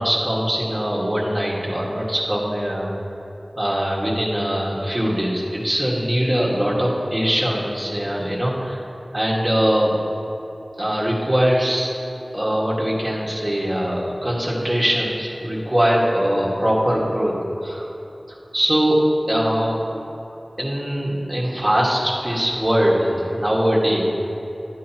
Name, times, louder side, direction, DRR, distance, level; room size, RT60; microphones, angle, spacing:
voice 1, 0.0-2.9 3.6-8.8 9.1-9.9 10.8-11.9 12.3-17.9 18.3-19.0 19.3-19.8 20.6-24.3, equal, 20° right, -4 dB, 1.8 m, -22 dB
11.5 x 9.0 x 2.9 m, 3.0 s
wide cardioid pair, 55°, 0 cm